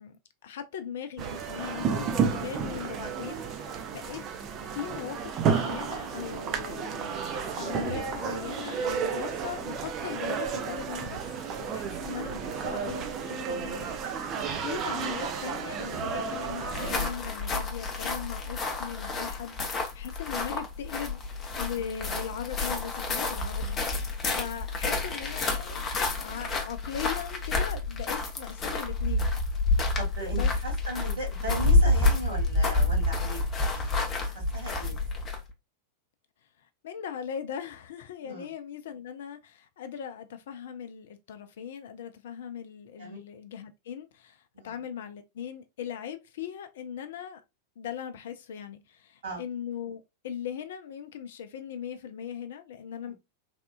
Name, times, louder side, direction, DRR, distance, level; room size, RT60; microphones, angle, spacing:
voice 1, 0.0-4.2 4.7-11.2 11.5-21.2 21.6-29.3 30.3-30.5 36.8-47.4 47.8-53.1, left 8 dB, 60° left, 0.4 m, -39 dB
sound 1, 1.2-17.1, right 6 dB, 35° right, 0.5 m, -32 dB
sound 2, 16.6-35.5, left 2 dB, 25° left, 0.7 m, -28 dB
voice 2, 21.7-22.1 30.0-34.1 34.5-34.9 38.2-38.5 43.0-43.2 44.5-44.7 49.2-49.4 53.0-53.1, right 1 dB, 65° right, 1.9 m, -38 dB
3.4 x 2.4 x 2.2 m
figure-of-eight pair, 90°, 0 cm